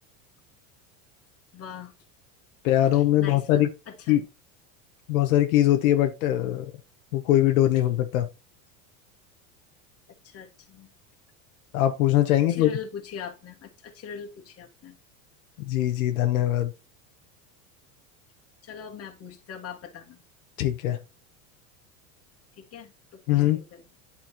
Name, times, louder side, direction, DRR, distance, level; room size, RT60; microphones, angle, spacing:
voice 1, 1.5-1.9 2.9-4.2 10.2-10.9 12.5-15.0 18.6-20.2 22.6-23.8, left 7 dB, 35° left, 1.7 m, -41 dB
voice 2, 2.6-3.7 4.1-4.2 5.1-6.7 7.1-8.3 11.7-12.7 15.6-16.7 20.6-21.0 23.3-23.6, left 13 dB, 85° left, 1.1 m, -22 dB
8.8 x 5.6 x 2.9 m
supercardioid pair, 125°, 41 cm